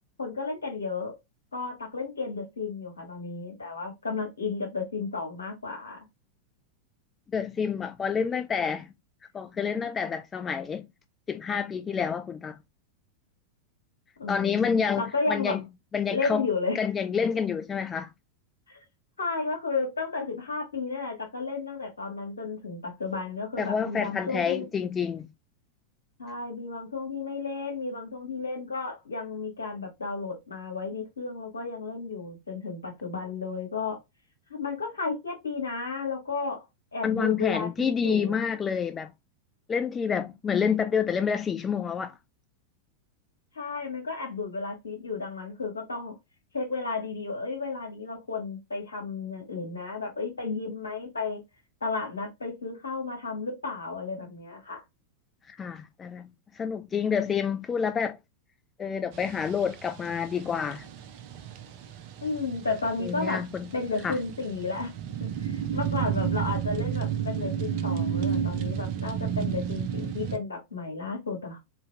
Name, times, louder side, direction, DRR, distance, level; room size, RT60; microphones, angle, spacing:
voice 1, 0.2-1.1 1.5-6.1 14.2-15.6 16.1-16.8 18.7-18.8 19.2-24.7 26.2-34.0 34.5-36.7 36.9-38.4 43.6-46.2 46.5-51.4 51.8-54.8 62.2-63.4 63.7-64.9 65.2-71.6, left 4 dB, 75° left, 1.8 m, -33 dB
voice 2, 7.3-8.9 9.3-10.9 11.3-12.6 14.3-15.6 15.9-16.4 16.7-18.1 23.6-25.3 37.0-39.1 39.7-42.2 55.5-58.2 58.8-60.9 63.0-63.7 64.0-64.2, left 6 dB, 20° left, 0.4 m, -28 dB
sound 1, 59.1-70.4, right 8 dB, 45° right, 0.6 m, -32 dB
3.9 x 2.8 x 3.4 m
figure-of-eight pair, 90°, 0 cm